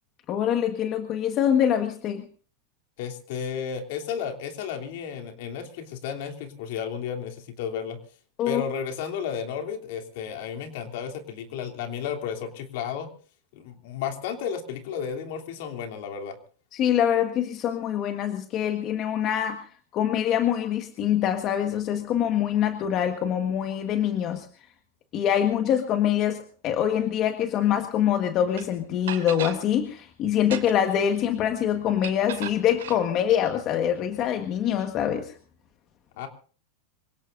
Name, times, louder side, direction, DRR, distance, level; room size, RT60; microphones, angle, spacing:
voice 1, 0.3-2.2 8.4-8.6 16.7-24.5 25.1-35.3, left 10 dB, 40° left, 6 dB, 1.6 m, -24 dB
voice 2, 3.0-8.0 8.4-13.1 13.5-16.4 36.2-36.3, left 7 dB, 65° left, 4 dB, 3.1 m, -33 dB
sound 1, 28.6-28.7 29.1-29.6 30.4-30.9 32.0-33.0, right 11 dB, 85° right, 2.7 m, -36 dB
25.5 x 17.5 x 2.6 m, 0.41 s
supercardioid pair, 130°, 0 cm